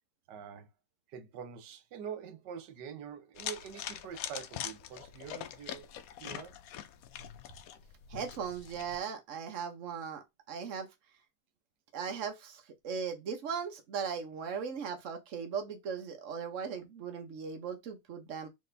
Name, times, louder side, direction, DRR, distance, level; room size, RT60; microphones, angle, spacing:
voice 1, 0.3-0.7 1.1-5.9 6.2-6.6 7.5-7.6, right 7 dB, 90° right, 1.4 m, -45 dB
sound 1, 3.4-9.0, left 10 dB, 70° left, 0.9 m, -43 dB
voice 2, 8.1-10.9 11.9-18.5, right 6 dB, 50° right, 1.3 m, -38 dB
4.3 x 3.5 x 3.3 m
omnidirectional pair, 1.8 m